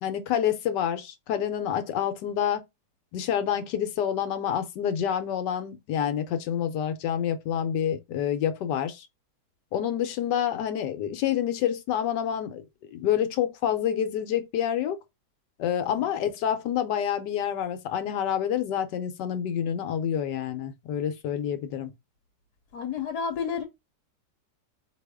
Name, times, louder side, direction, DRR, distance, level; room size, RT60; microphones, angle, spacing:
voice 1, 0.0-2.6 3.1-9.1 9.7-12.6 12.9-15.0 15.6-21.9, left 9 dB, 85° left, 1.3 m, -28 dB
voice 2, 22.7-23.6, left 6 dB, 70° left, 1.3 m, -31 dB
4.1 x 3.0 x 3.4 m
omnidirectional pair, 1.8 m